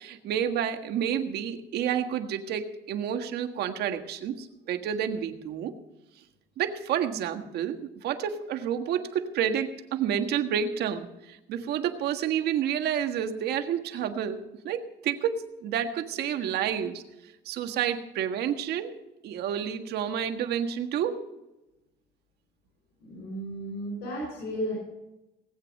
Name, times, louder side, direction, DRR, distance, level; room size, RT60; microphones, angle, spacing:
voice 1, 0.0-5.8 6.6-14.4 14.6-17.0 17.4-18.9 19.2-21.2, right 9 dB, 75° right, 6 dB, 1.6 m, -29 dB
voice 2, 23.0-24.7, equal, 80° left, -2 dB, 5.7 m, -34 dB
19.0 x 8.5 x 6.5 m, 0.96 s
cardioid pair, 110°, 17 cm